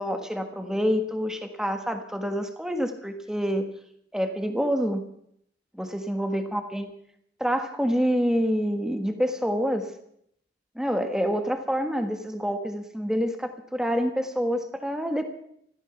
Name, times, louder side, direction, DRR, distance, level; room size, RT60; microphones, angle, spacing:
voice 1, 0.0-3.7 4.1-5.0 5.8-6.9 7.4-9.9 10.7-15.2, equal, 5° right, 6 dB, 1.4 m, -27 dB
15.0 x 14.5 x 5.8 m, 0.72 s
head